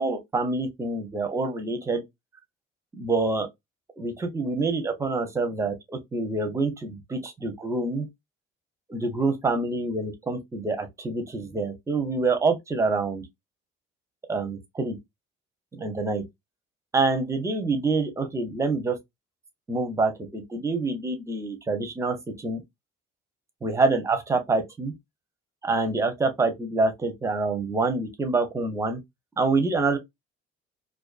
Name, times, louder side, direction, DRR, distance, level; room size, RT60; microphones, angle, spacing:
voice 1, 0.0-2.0 3.0-3.5 4.0-8.1 8.9-13.2 14.3-15.0 15.8-16.2 16.9-19.0 19.7-22.6 23.6-24.9 25.6-29.0 29.4-30.0, right 3 dB, 15° right, 0.5 m, -26 dB
2.4 x 2.4 x 2.3 m
cardioid pair, 165°, 21 cm